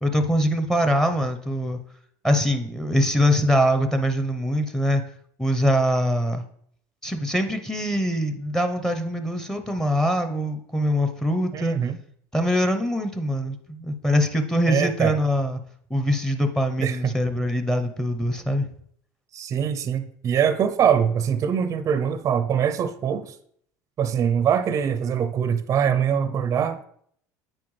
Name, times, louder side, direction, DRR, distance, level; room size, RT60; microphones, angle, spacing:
voice 1, 0.0-1.8 2.2-5.0 5.4-6.4 7.0-11.8 12.3-15.6 15.9-18.7, equal, 5° left, 7 dB, 0.8 m, -23 dB
voice 2, 11.5-12.0 14.7-15.2 16.8-17.1 19.3-23.4 24.0-26.9, right 8 dB, 35° right, 10 dB, 0.5 m, -23 dB
8.4 x 4.7 x 3.2 m, 0.65 s
supercardioid pair, 105°, 9 cm